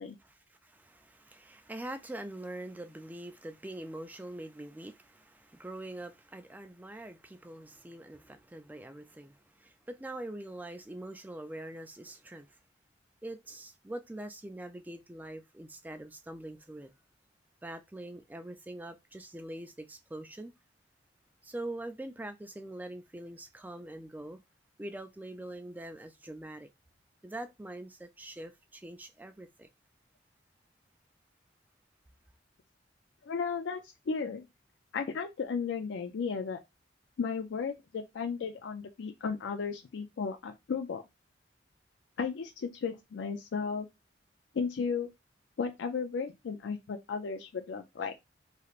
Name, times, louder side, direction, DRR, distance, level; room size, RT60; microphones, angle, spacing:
voice 1, 0.2-12.6 13.2-16.9 17.6-20.5 21.4-24.4 24.8-26.7 27.2-29.7, right 1 dB, 10° right, 0.3 m, -44 dB
voice 2, 33.3-34.5 34.9-36.6 37.2-41.0 42.2-43.9 44.5-45.1 45.6-48.1, left 5 dB, 80° left, 0.4 m, -34 dB
3.2 x 2.8 x 2.4 m
head